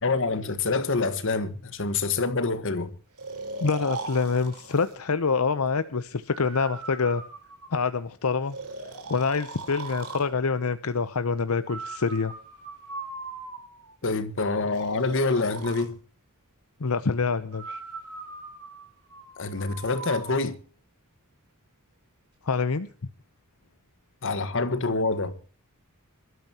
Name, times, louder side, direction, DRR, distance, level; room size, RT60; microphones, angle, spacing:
voice 1, 0.0-2.9 14.0-16.0 19.4-20.6 24.2-25.4, left 3 dB, 60° left, 1.5 m, -26 dB
Breathing, 3.2-5.0 6.3-8.0 8.5-10.3 11.7-13.9 14.7-15.9 17.5-20.4, right 3 dB, 90° right, 4.0 m, -39 dB
voice 2, 3.6-7.2 7.7-8.6 9.1-12.3 16.8-17.8 22.4-22.9, left 4 dB, 80° left, 0.8 m, -26 dB
25.5 x 12.5 x 2.9 m
head